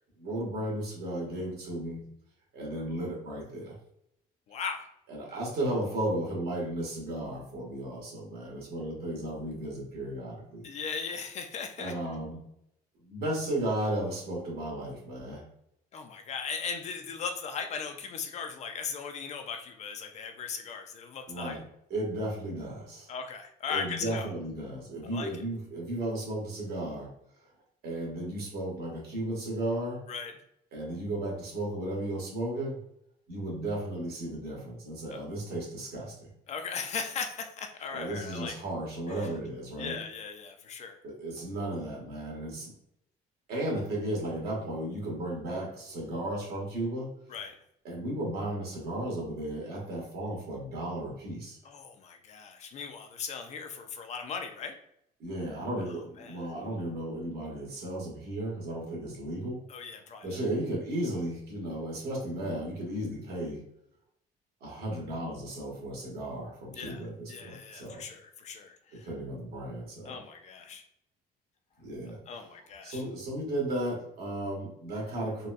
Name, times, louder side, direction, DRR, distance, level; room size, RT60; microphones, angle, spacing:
voice 1, 0.2-2.0 2.5-3.7 5.1-10.7 11.8-12.4 13.0-15.4 21.3-21.6 21.9-23.1 23.7-27.1 27.8-30.0 30.7-32.8 33.3-36.3 37.9-40.0 41.0-42.7 43.5-47.1 47.8-51.6 55.2-59.6 60.2-63.6 64.6-68.0 68.9-70.2 71.8-72.4 72.8-75.5, right 1 dB, 75° right, -3 dB, 1.5 m, -34 dB
voice 2, 4.5-4.9 10.6-11.9 15.9-21.6 23.1-24.3 25.0-25.3 30.1-30.3 35.1-35.2 36.5-38.6 39.2-39.3 39.8-41.0 47.3-47.5 51.6-54.7 56.2-56.5 59.7-60.4 66.7-67.0 67.3-69.1 70.1-70.8 72.3-73.0, left 6 dB, 45° left, 6 dB, 0.4 m, -38 dB
4.0 x 2.2 x 2.4 m, 0.76 s
cardioid pair, 140°, 16 cm